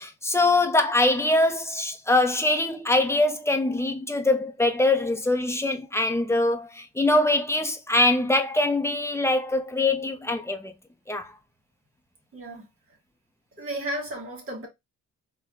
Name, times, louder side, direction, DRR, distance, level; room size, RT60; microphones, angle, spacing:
voice 1, 0.0-10.7 11.1-11.3, left 2 dB, 10° left, 0.6 m, -23 dB
voice 2, 12.3-12.7 13.6-14.7, right 1 dB, 45° right, 1.5 m, -33 dB
3.9 x 2.2 x 2.7 m
cardioid pair, 90°, 30 cm